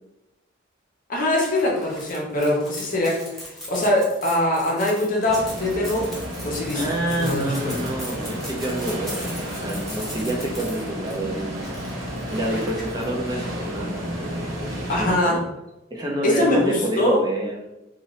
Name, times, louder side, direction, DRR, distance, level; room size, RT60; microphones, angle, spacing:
voice 1, 1.1-6.1 6.4-7.9 14.9-15.4 16.2-17.2, left 1 dB, 45° left, -1 dB, 0.8 m, -23 dB
sound 1, 1.3-13.0, equal, ahead, 0.8 m, -39 dB
sound 2, 5.2-15.1, equal, 80° right, 0.9 m, -32 dB
voice 2, 6.7-11.6 12.3-15.4 15.9-17.6, right 1 dB, 20° right, -2 dB, 0.5 m, -28 dB
2.8 x 2.6 x 3.1 m, 0.94 s
head